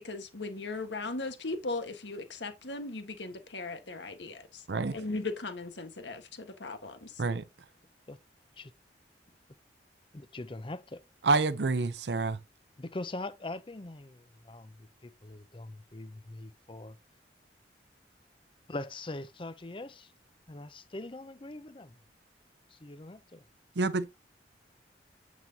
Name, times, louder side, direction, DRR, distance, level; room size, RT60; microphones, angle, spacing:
voice 1, 0.0-4.6 4.9-7.2, left 3 dB, 80° left, 1.5 m, -38 dB
voice 2, 10.1-11.0 12.8-17.0 18.7-20.1 20.5-22.0 22.7-23.5, left 2 dB, 30° left, 0.6 m, -42 dB
voice 3, 11.2-12.4 23.8-24.1, right 3 dB, 70° right, 0.6 m, -27 dB
9.2 x 6.0 x 2.8 m
head